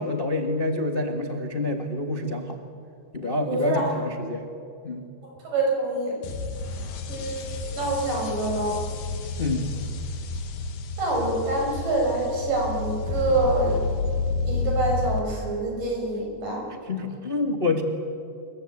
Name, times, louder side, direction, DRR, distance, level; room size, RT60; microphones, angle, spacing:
voice 1, 0.0-2.6 3.1-4.5 4.8-5.0 9.4-9.7 16.7-17.8, left 2 dB, 25° left, 4 dB, 1.2 m, -27 dB
voice 2, 3.5-3.8 5.4-6.1 7.1-8.8 11.0-13.7 14.4-16.6, right 2 dB, 80° right, 0 dB, 8.1 m, -26 dB
sound 1, 6.2-15.2, left 4 dB, 90° left, 3.4 m, -30 dB
27.5 x 23.0 x 8.8 m, 2.5 s
omnidirectional pair, 3.7 m